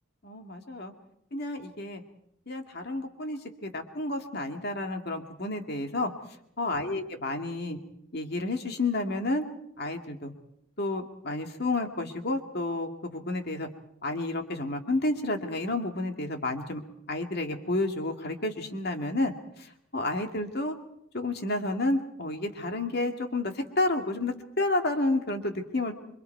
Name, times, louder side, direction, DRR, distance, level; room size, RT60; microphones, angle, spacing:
voice 1, 0.2-0.9 1.3-2.0 2.5-6.1 6.6-7.8 8.1-9.4 9.8-10.3 10.8-13.7 14.0-16.8 17.1-19.3 19.9-20.7 21.1-25.9, left 2 dB, 50° left, 5 dB, 2.2 m, -30 dB
27.5 x 24.0 x 4.6 m, 0.75 s
head